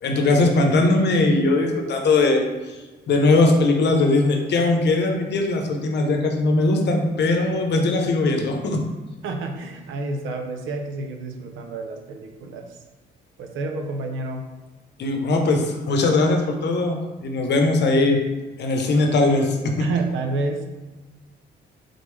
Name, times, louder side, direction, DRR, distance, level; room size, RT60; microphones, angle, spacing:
voice 1, 0.0-2.8 3.1-8.8 15.0-18.2 18.6-19.9, left 2 dB, 60° left, 3 dB, 0.8 m, -20 dB
voice 2, 9.2-12.8 13.4-14.5 19.8-20.6, right 3 dB, 80° right, 4 dB, 0.6 m, -29 dB
3.8 x 3.5 x 3.3 m, 1.2 s
cardioid pair, 90°, 20 cm